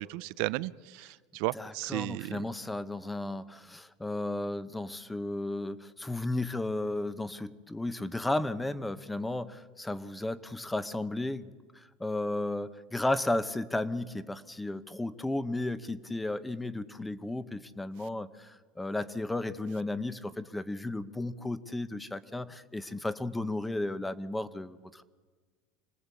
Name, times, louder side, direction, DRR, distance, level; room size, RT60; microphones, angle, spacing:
voice 1, 0.0-2.4, right 19 dB, 65° right, 0.7 m, -34 dB
voice 2, 1.5-25.0, left 2 dB, 5° left, 0.9 m, -34 dB
26.0 x 19.0 x 8.5 m
supercardioid pair, 140°, 0 cm